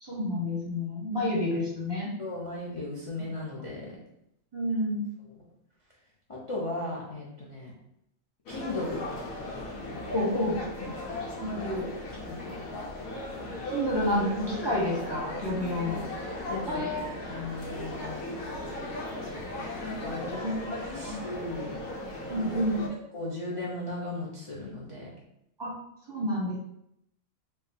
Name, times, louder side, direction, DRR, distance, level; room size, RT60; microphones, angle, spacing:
voice 1, 0.0-2.1 4.5-5.0 10.1-10.6 11.4-11.9 13.6-16.0 16.7-17.1 20.4-20.6 21.0-21.1 22.3-22.8 25.6-25.7 26.1-26.6, left 1 dB, 20° right, -6 dB, 0.8 m, -29 dB
voice 2, 2.2-3.9 6.3-7.7 8.5-9.0 10.8-10.9 12.1-12.7 15.4-16.1 16.5-18.2 19.8-20.5 20.8-21.7 22.4-22.5 23.1-25.1, left 2 dB, 40° left, -5 dB, 0.5 m, -37 dB
sound 1, 8.5-22.9, left 1 dB, 90° left, 1.1 m, -37 dB
3.4 x 2.3 x 4.2 m, 0.77 s
omnidirectional pair, 1.4 m